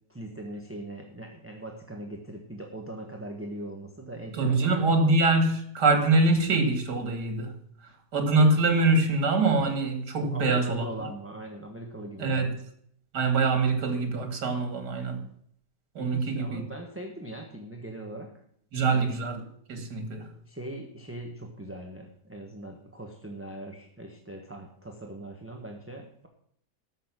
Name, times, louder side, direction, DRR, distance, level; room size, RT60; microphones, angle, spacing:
voice 1, 0.1-4.7 10.2-12.5 16.0-18.3 18.8-19.1 20.5-26.3, right 1 dB, 10° right, 1.1 m, -40 dB
voice 2, 4.4-7.5 8.1-10.9 12.2-12.5 13.1-15.2 16.0-16.6 18.7-19.4 19.7-20.3, right 3 dB, 85° right, 2.5 m, -24 dB
13.5 x 6.6 x 6.0 m
omnidirectional pair, 1.7 m